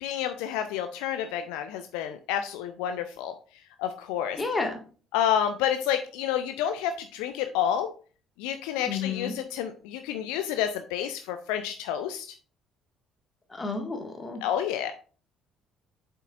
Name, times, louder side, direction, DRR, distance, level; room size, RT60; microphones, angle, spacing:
voice 1, 0.0-3.3 3.8-4.4 5.1-7.9 8.4-12.3 14.4-14.9, left 9 dB, 65° left, 8 dB, 0.4 m, -29 dB
voice 2, 4.4-4.8 8.9-9.4 13.5-14.4, left 4 dB, 20° left, 3 dB, 1.8 m, -31 dB
7.2 x 5.4 x 2.5 m, 0.39 s
figure-of-eight pair, 50°, 0 cm